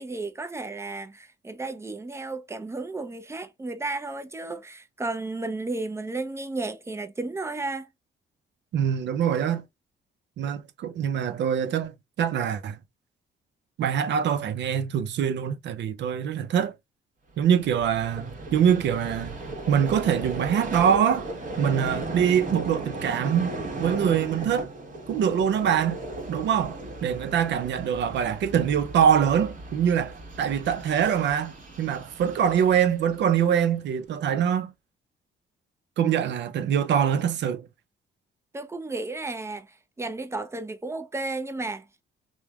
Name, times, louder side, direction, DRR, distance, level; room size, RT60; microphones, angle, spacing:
voice 1, 0.0-7.9 38.5-41.9, right 2 dB, 15° right, 0.5 m, -33 dB
voice 2, 8.7-9.6 10.4-12.8 13.8-16.7 17.4-19.4 19.7-21.3 21.6-23.5 23.8-24.7 25.1-26.0 26.3-34.7 36.0-37.6, right 8 dB, 65° right, 0.5 m, -24 dB
Vehicle, 17.3-33.7, right 2 dB, 40° right, 1.2 m, -37 dB
3.1 x 2.1 x 2.2 m
cardioid pair, 90°, 20 cm